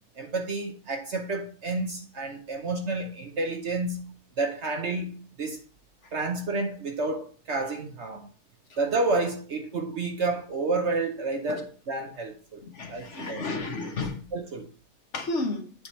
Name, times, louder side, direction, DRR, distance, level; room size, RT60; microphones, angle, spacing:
voice 1, 0.2-4.1 4.4-5.6 6.1-8.3 8.8-12.6 12.9-13.4 14.3-14.7, right 3 dB, 55° right, 1.0 m, -30 dB
voice 2, 12.7-14.2 15.1-15.6, left 3 dB, 50° left, 1.3 m, -31 dB
8.5 x 4.8 x 4.3 m
omnidirectional pair, 1.7 m